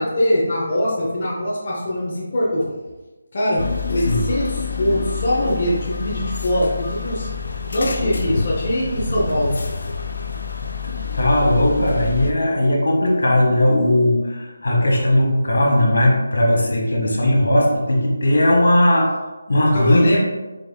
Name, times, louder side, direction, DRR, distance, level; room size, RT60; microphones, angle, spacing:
voice 1, 0.0-2.6 3.3-7.3 7.7-9.5 19.7-20.2, equal, 35° left, -7 dB, 0.8 m, -22 dB
sound 1, 3.6-12.3, left 5 dB, 60° left, 0.4 m, -27 dB
voice 2, 10.8-19.1 19.5-20.2, left 1 dB, 75° left, -2 dB, 1.3 m, -17 dB
4.3 x 3.7 x 2.2 m, 1.2 s
figure-of-eight pair, 175°, 0 cm